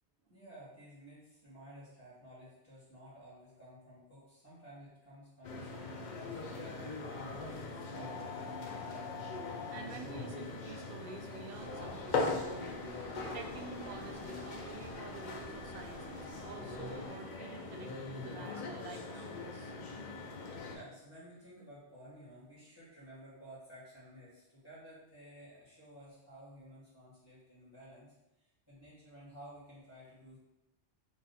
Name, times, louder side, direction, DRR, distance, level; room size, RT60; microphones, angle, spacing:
voice 1, 0.3-9.1 20.6-30.4, equal, 25° left, -10 dB, 1.7 m, -54 dB
sound 1, 5.4-20.7, left 3 dB, 50° left, 0.6 m, -41 dB
voice 2, 9.7-19.7, right 5 dB, 65° right, 4 dB, 0.7 m, -49 dB
sound 2, 11.5-17.1, left 1 dB, 80° left, 2.0 m, -51 dB
4.0 x 2.5 x 4.0 m, 0.92 s
omnidirectional pair, 1.1 m